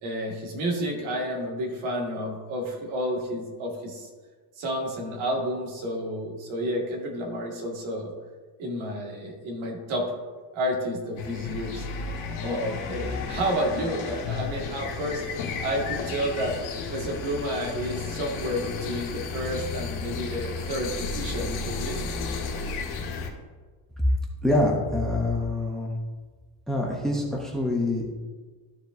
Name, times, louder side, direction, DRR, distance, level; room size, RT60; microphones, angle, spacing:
voice 1, 0.0-4.1 4.6-8.1 8.6-10.1 10.5-11.9 12.3-15.2 15.6-16.6 16.9-22.0, equal, 75° right, -1 dB, 2.0 m, -30 dB
sound 1, 11.2-23.3, left 4 dB, 75° left, 1.6 m, -33 dB
voice 2, 24.4-25.9 26.7-28.1, left 1 dB, ahead, 0 dB, 0.8 m, -25 dB
13.0 x 5.0 x 2.6 m, 1.4 s
cardioid pair, 165°, 48 cm